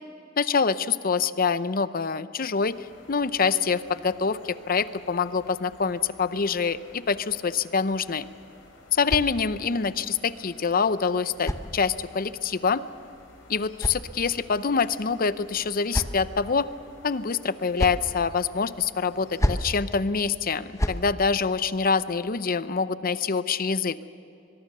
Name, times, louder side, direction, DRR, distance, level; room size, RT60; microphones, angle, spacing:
voice 1, 0.4-2.7 3.1-8.3 8.9-12.8 13.5-16.7 17.0-24.0, left 5 dB, 50° left, 14 dB, 0.7 m, -25 dB
sound 1, 2.5-19.7, left 2 dB, 85° left, 4.5 m, -53 dB
sound 2, 8.2-9.8 10.8-12.3 13.3-14.6 15.4-16.5 17.4-18.1 19.1-19.8 20.5-21.1, left 1 dB, 15° left, 1.0 m, -32 dB
22.5 x 22.5 x 6.7 m, 2.9 s
head